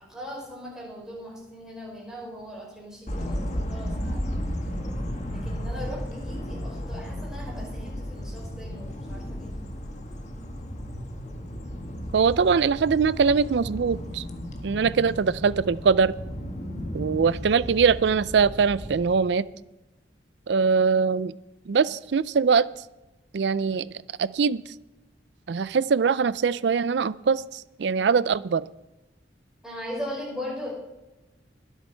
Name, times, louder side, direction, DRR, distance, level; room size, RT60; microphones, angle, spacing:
voice 1, 0.1-4.5 5.3-9.5 29.6-30.7, equal, 5° right, -5 dB, 5.4 m, -39 dB
sound 1, 3.1-19.1, equal, 40° left, 1.6 m, -34 dB
voice 2, 12.1-14.2 14.6-16.1 16.9-19.4 20.5-21.4 21.7-22.7 23.3-23.9 24.2-24.6 25.5-28.6, right 5 dB, 70° right, 18 dB, 0.4 m, -22 dB
22.0 x 8.1 x 4.5 m, 1.0 s
head